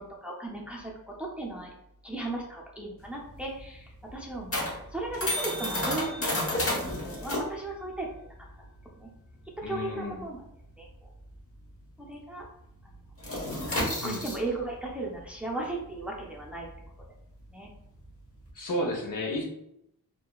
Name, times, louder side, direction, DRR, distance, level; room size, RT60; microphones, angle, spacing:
voice 1, 0.0-1.7 2.0-8.3 8.9-9.1 9.7-10.4 10.8-11.1 12.0-12.5 14.0-16.7 17.5-17.7, right 2 dB, 5° right, -2 dB, 0.6 m, -36 dB
sound 1, 3.0-12.0 12.2-12.5 12.8-18.5, left 1 dB, 40° left, 1.0 m, -33 dB
voice 2, 9.6-10.2 14.0-14.2 18.5-19.4, left 1 dB, 60° left, 0 dB, 0.7 m, -32 dB
2.8 x 2.3 x 2.3 m, 0.77 s
cardioid pair, 55°, 36 cm